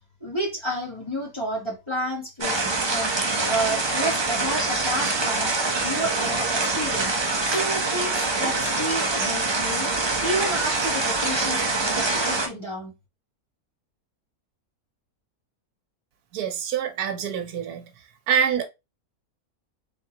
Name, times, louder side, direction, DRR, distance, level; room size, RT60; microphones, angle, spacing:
voice 1, 0.2-3.1 3.5-5.5 5.8-7.1 7.4-9.9 10.2-12.9, right 1 dB, 20° left, 1.4 m, -30 dB
sound 1, 2.4-12.5, right 3 dB, 30° right, 0.5 m, -25 dB
voice 2, 16.3-17.9 18.3-18.7, right 7 dB, 85° right, 1.3 m, -25 dB
3.8 x 3.5 x 2.8 m
omnidirectional pair, 1.6 m